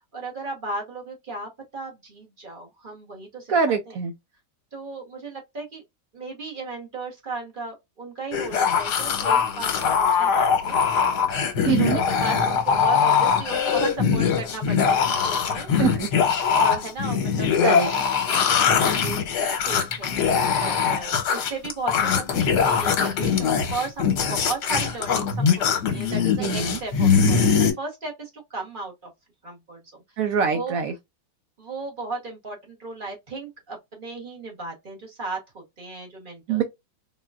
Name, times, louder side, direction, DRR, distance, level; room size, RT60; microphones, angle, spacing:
voice 1, 0.1-3.5 3.9-4.0 4.7-5.8 6.1-10.8 11.6-15.7 16.6-18.0 18.4-20.2 20.5-27.4 27.8-28.9 29.4-30.0 30.5-30.7 31.6-36.6, right 3 dB, 35° right, 1.0 m, -35 dB
voice 2, 3.5-4.1 11.6-12.0 15.8-16.1 17.6-17.9 26.4-26.8 30.2-30.9 36.5-36.6, right 6 dB, 70° right, 0.8 m, -23 dB
sound 1, 8.3-27.7, left 6 dB, 70° left, 1.4 m, -22 dB
3.9 x 2.3 x 2.3 m
omnidirectional pair, 1.9 m